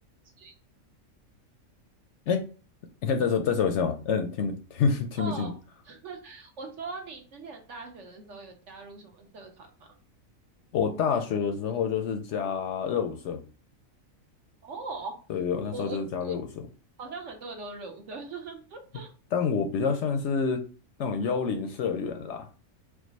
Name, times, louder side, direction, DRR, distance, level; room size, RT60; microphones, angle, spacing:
voice 1, 3.0-5.5 10.7-13.4 15.3-16.4 19.3-20.6 21.0-22.5, left 6 dB, 65° left, 6 dB, 0.8 m, -27 dB
voice 2, 5.2-5.5 5.8-9.9 14.6-15.2 15.7-16.0 16.2-16.3 17.0-19.1, right 3 dB, 60° right, 3 dB, 1.1 m, -40 dB
4.8 x 2.1 x 3.9 m, 0.37 s
omnidirectional pair, 1.4 m